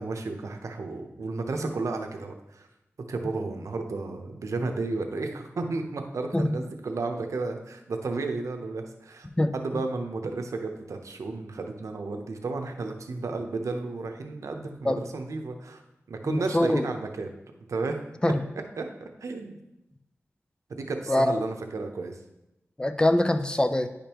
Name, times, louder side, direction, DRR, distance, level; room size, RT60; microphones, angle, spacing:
voice 1, 0.0-2.7 3.1-9.3 9.5-15.8 16.1-17.3 17.7-18.0 18.8-19.6 20.7-22.2, right 3 dB, 85° right, 4 dB, 0.7 m, -33 dB
voice 2, 9.4-9.8 14.8-15.0 16.2-16.8 18.2-18.4 21.1-21.3 22.8-23.9, left 1 dB, 15° left, 9 dB, 0.4 m, -24 dB
9.8 x 5.2 x 2.9 m, 0.91 s
wide cardioid pair, 90°, 5 cm